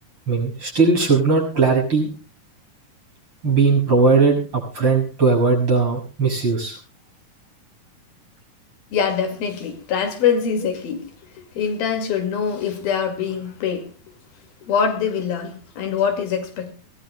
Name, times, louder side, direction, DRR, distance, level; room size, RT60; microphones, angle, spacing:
voice 1, 0.3-2.1 3.4-6.8, right 4 dB, 35° right, 7.2 m, -18 dB
voice 2, 8.9-11.1 11.6-13.9 14.6-16.7, left 7 dB, 75° left, 3.9 m, -23 dB
23.5 x 18.5 x 2.2 m
omnidirectional pair, 4.4 m